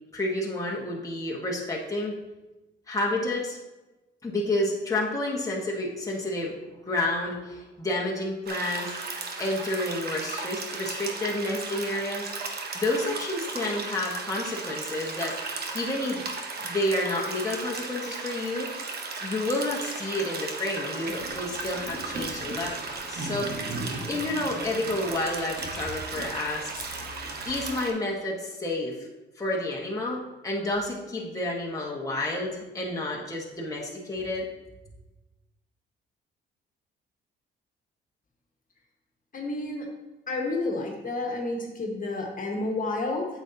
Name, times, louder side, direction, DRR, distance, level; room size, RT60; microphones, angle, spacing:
voice 1, 0.1-2.1 2.9-3.6 4.2-6.6 6.8-9.0 9.4-12.3 12.7-16.3 16.6-18.7 19.2-23.7 24.1-26.8 27.4-29.0 29.4-34.5, left 1 dB, 15° left, -3 dB, 1.5 m, -30 dB
sound 1, 8.5-27.9, right 3 dB, 50° right, 1.1 m, -36 dB
sound 2, 21.0-27.6, right 1 dB, 75° right, 1.5 m, -40 dB
voice 2, 39.3-39.9 40.3-43.3, left 2 dB, 45° left, 0 dB, 1.6 m, -30 dB
8.4 x 7.2 x 2.9 m, 1.1 s
cardioid pair, 90°, 20 cm